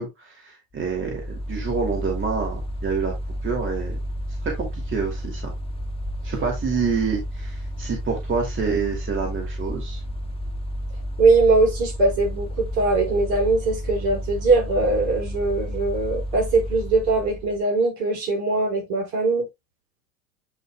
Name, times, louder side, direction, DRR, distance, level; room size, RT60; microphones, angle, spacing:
voice 1, 0.0-3.1 3.4-4.0 4.4-5.5 6.2-10.0, right 5 dB, 30° right, 2.6 m, -27 dB
Mechanical fan, 0.8-17.6, equal, 15° left, 1.5 m, -31 dB
voice 2, 11.2-19.5, right 3 dB, 55° right, 5.0 m, -21 dB
8.8 x 5.4 x 2.2 m
hypercardioid pair, 85°, 42 cm